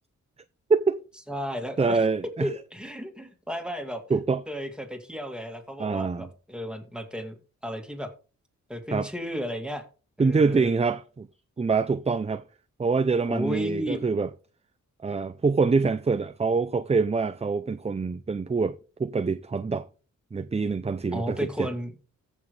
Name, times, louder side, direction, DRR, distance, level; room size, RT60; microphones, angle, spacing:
voice 1, 0.7-1.0 1.8-2.5 4.1-4.4 5.8-6.3 8.9-9.1 10.2-11.3 11.6-12.4 12.8-14.3 15.0-19.9 20.3-21.7, right 4 dB, 20° right, 0.5 m, -25 dB
voice 2, 1.3-2.0 2.4-4.0 4.5-7.3 7.6-8.1 8.7-9.8 10.2-10.7 13.3-14.0 21.1-21.9, equal, 5° right, 2.3 m, -33 dB
14.5 x 6.3 x 3.3 m
cardioid pair, 85°, 30 cm